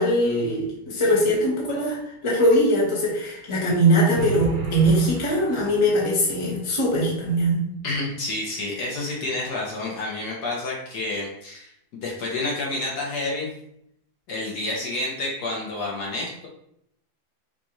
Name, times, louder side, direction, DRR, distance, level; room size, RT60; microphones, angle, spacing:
voice 1, 0.0-7.6, equal, 20° left, -4 dB, 1.0 m, -21 dB
sound 1, 4.1-6.2, right 2 dB, 85° right, 0.5 m, -33 dB
voice 2, 7.8-13.5 14.3-16.5, left 2 dB, 60° left, -3 dB, 1.3 m, -29 dB
6.2 x 2.5 x 3.0 m, 0.74 s
omnidirectional pair, 2.0 m